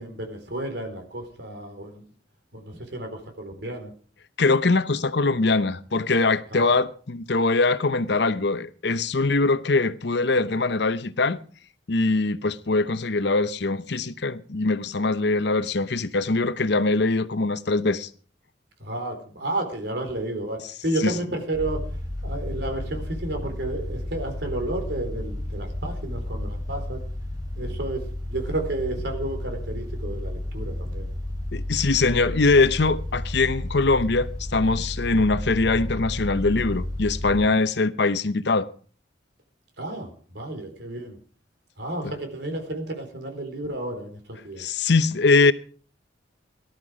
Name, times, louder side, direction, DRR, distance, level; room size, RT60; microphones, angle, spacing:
voice 1, 0.0-2.0 2.5-3.9 6.5-6.7 18.8-21.8 22.2-27.1 27.6-31.1 39.8-41.2 41.8-44.6, right 2 dB, 65° right, 4.1 m, -32 dB
voice 2, 4.4-11.4 11.9-18.1 21.0-21.1 31.5-38.7 42.0-42.1 44.6-45.5, left 3 dB, 65° left, 0.9 m, -22 dB
sound 1, 21.5-37.4, left 1 dB, 20° right, 6.7 m, -32 dB
18.5 x 12.0 x 5.0 m
head